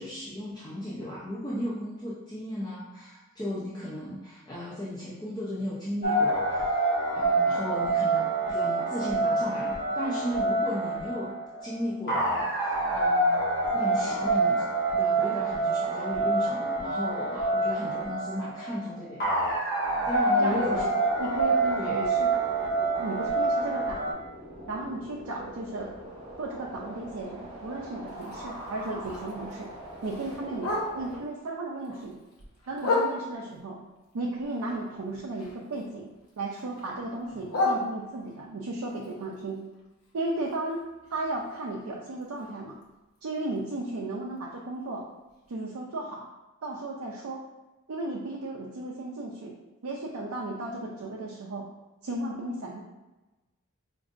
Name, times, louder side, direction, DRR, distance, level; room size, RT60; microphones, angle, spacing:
voice 1, 0.0-11.3 11.6-13.4 13.7-14.7 14.9-19.6 20.1-20.9 21.8-22.1, left 1 dB, 20° left, -8 dB, 0.5 m, -35 dB
sound 1, 6.0-24.1, right 2 dB, 45° left, 1.2 m, -27 dB
voice 2, 20.4-20.9 21.2-22.3 23.0-24.2 24.7-25.9 26.4-29.7 30.0-32.2 32.7-33.8 34.1-36.1 36.4-39.6 40.1-40.8 41.1-42.8 43.2-45.0 45.5-46.3 46.6-47.4 47.9-49.5 49.8-51.7 52.0-52.8, right 2 dB, 85° right, -2 dB, 0.5 m, -35 dB
sound 2, 21.0-31.2, right 1 dB, 25° right, 0.9 m, -43 dB
Bark, 28.1-31.3 31.7-33.6 34.0-35.9 36.1-38.5 38.9-42.8 43.2-43.3 43.6-43.9 44.4-44.5 44.8-44.9 45.4-45.5, left 2 dB, 85° left, 0.9 m, -35 dB
4.9 x 2.6 x 2.5 m, 1.1 s
head